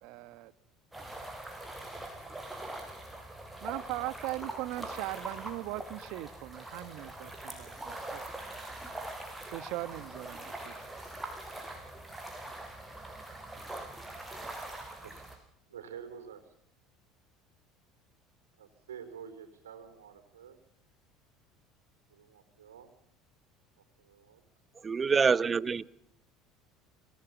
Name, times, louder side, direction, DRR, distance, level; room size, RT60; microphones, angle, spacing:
voice 1, 0.0-0.5 3.6-8.2 9.4-10.8, right 18 dB, 65° right, 16 dB, 1.2 m, -39 dB
sound 1, 0.9-15.4, right 1 dB, 10° right, 6.9 m, -43 dB
voice 2, 15.7-16.5 18.6-20.6 22.1-22.9 24.0-24.4, right 7 dB, 90° right, 9 dB, 4.2 m, -48 dB
voice 3, 24.8-25.9, right 5 dB, 30° right, 18 dB, 1.0 m, -26 dB
26.5 x 18.5 x 7.2 m, 0.78 s
hypercardioid pair, 75°, 0 cm